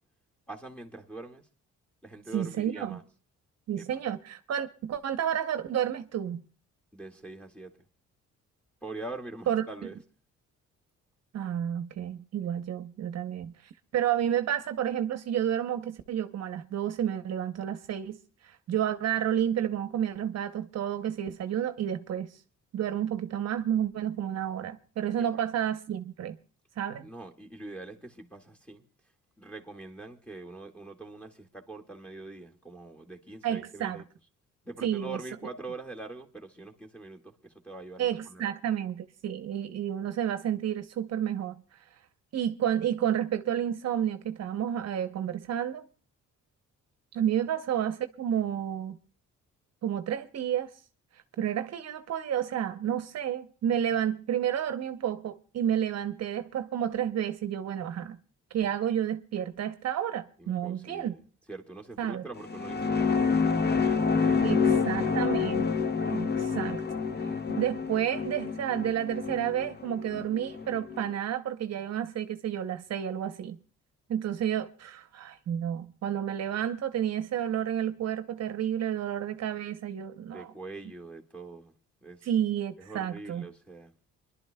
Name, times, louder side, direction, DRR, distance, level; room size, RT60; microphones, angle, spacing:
voice 1, 0.5-1.5 2.0-3.0 3.8-4.0 6.9-7.9 8.8-10.0 25.2-25.4 27.0-28.8 29.4-34.1 34.6-38.4 60.4-61.2 61.5-65.5 80.3-81.7 82.0-82.3 82.8-83.9, right 3 dB, 5° left, 1.8 m, -44 dB
voice 2, 2.3-3.0 3.7-6.4 9.5-9.7 11.3-13.5 13.9-18.2 18.4-22.4 22.7-26.4 26.8-27.1 33.4-34.0 34.8-35.2 38.0-41.6 42.3-45.9 47.1-49.0 49.8-50.7 51.4-58.2 58.5-61.1 62.0-62.2 64.4-65.7 66.1-66.8 67.6-73.6 74.1-80.5 82.2-83.5, right 10 dB, 60° right, 0.8 m, -30 dB
sound 1, 62.4-71.0, left 5 dB, 35° left, 0.8 m, -28 dB
29.5 x 11.5 x 2.2 m
cardioid pair, 90°, 30 cm